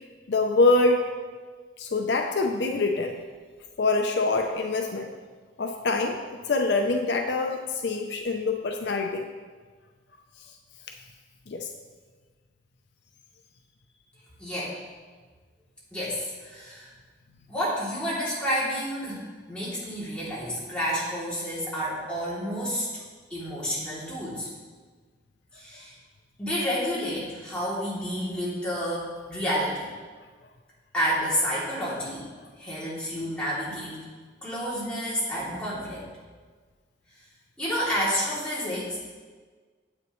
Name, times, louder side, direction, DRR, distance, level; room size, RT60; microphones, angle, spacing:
voice 1, 0.3-1.1 1.8-3.2 3.8-5.1 5.6-9.3 11.5-11.7, left 3 dB, 65° left, 4 dB, 0.5 m, -25 dB
voice 2, 14.4-14.8 15.9-16.9 17.5-19.2 19.5-22.9 23.3-24.5 25.5-25.9 26.4-29.9 30.9-32.3 32.6-34.0 34.4-36.0 37.6-39.1, equal, 5° left, -9 dB, 2.7 m, -30 dB
9.5 x 7.9 x 3.1 m, 1.5 s
head